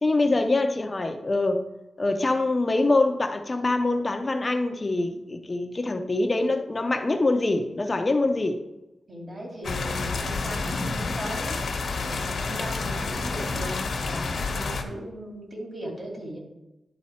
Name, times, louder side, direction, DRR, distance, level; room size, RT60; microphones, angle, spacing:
voice 1, 0.0-1.6 2.0-8.6, left 2 dB, 30° left, 6 dB, 0.7 m, -24 dB
voice 2, 9.1-11.6 12.0-16.4, equal, 40° right, -1 dB, 2.6 m, -38 dB
sound 1, 9.6-14.8, left 3 dB, 70° left, 1.1 m, -29 dB
11.0 x 4.2 x 4.2 m, 0.99 s
wide cardioid pair, 110°, 0 cm